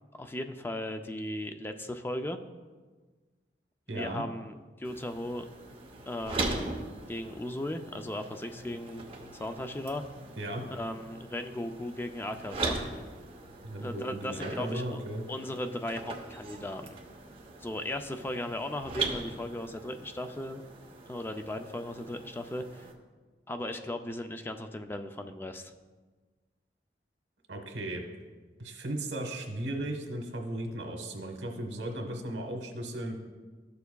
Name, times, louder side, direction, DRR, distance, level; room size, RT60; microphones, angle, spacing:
voice 1, 0.2-2.4 3.9-5.5 6.1-6.7 7.1-9.0 9.3-10.0 10.7-12.8 13.8-15.0 15.3-17.0 17.6-20.6 21.1-22.8 23.5-25.7, left 1 dB, 15° left, 6 dB, 0.3 m, -37 dB
voice 2, 3.9-4.2 10.4-10.6 13.6-15.2 27.5-28.0 28.6-33.2, right 1 dB, 85° right, 3 dB, 1.2 m, -36 dB
sound 1, 4.8-22.9, right 3 dB, 30° right, 0.8 m, -40 dB
13.0 x 6.9 x 2.3 m, 1.4 s
head